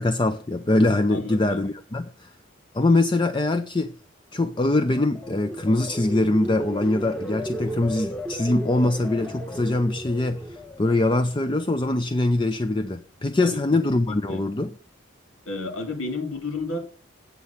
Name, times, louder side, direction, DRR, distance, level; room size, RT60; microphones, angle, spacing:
voice 1, 0.0-2.3 2.7-3.9 4.3-14.7, left 2 dB, 25° left, 0.5 m, -23 dB
voice 2, 1.1-1.6 13.4-13.6 14.0-14.4 15.5-16.8, left 2 dB, 85° left, 2.8 m, -32 dB
sound 1, 4.6-11.7 12.1-12.5, equal, 5° left, 1.2 m, -35 dB
8.2 x 8.1 x 5.7 m
head